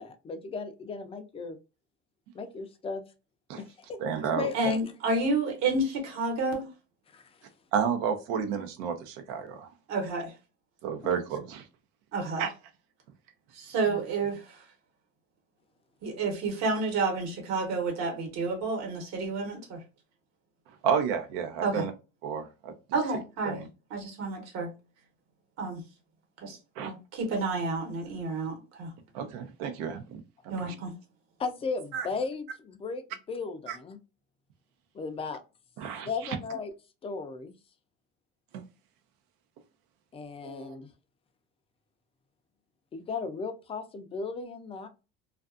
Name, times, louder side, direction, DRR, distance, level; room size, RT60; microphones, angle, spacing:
voice 1, 0.0-1.6 2.3-3.0 3.6-4.0 4.4-4.8 7.1-7.4 11.0-11.1 13.8-14.0 31.4-33.0 33.3-34.0 34.9-35.4 36.0-36.7 37.0-37.5 40.1-40.9 42.9-44.9, left 4 dB, 20° left, 0.4 m, -36 dB
voice 2, 4.0-4.5 7.7-9.7 10.8-11.6 12.4-12.5 20.8-21.9 22.2-22.7 23.4-23.7 26.8-26.9 29.1-30.2 30.6-30.7 31.9-32.1 33.7-33.8 35.8-36.3 38.5-38.6 40.4-40.7, right 7 dB, 80° right, 0.7 m, -31 dB
voice 3, 4.5-6.6 9.9-10.3 12.1-12.5 13.5-14.6 16.0-19.8 21.6-21.9 22.9-23.6 23.9-24.7 25.6-25.8 26.4-28.9 30.5-30.9, right 3 dB, 60° right, 1.1 m, -30 dB
2.5 x 2.3 x 2.4 m
supercardioid pair, 115°, 31 cm